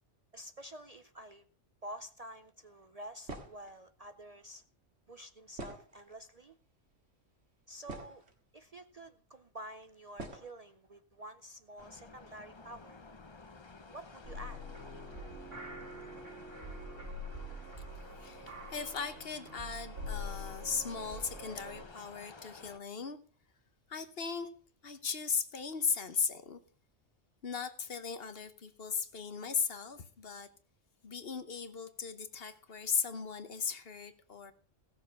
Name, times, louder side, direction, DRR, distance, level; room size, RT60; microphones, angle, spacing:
voice 1, 0.3-1.4 1.8-4.6 5.1-6.6 7.7-8.2 8.5-13.0 13.9-14.6, right 1 dB, 40° right, 9 dB, 0.6 m, -49 dB
sound 1, 3.3-3.7 5.5-6.3 7.1-7.2 7.6-8.4 9.3-9.4 10.2-10.5, right 2 dB, 60° right, 2.3 m, -45 dB
sound 2, 11.8-22.8, left 4 dB, 25° left, 0.7 m, -54 dB
sound 3, 14.2-21.9, left 1 dB, 85° right, 4.0 m, -45 dB
voice 2, 18.2-23.2 23.9-24.5 24.8-26.6 27.4-30.5 31.0-34.5, left 6 dB, 55° left, 11 dB, 1.2 m, -37 dB
17.0 x 7.0 x 5.5 m, 0.43 s
omnidirectional pair, 1.3 m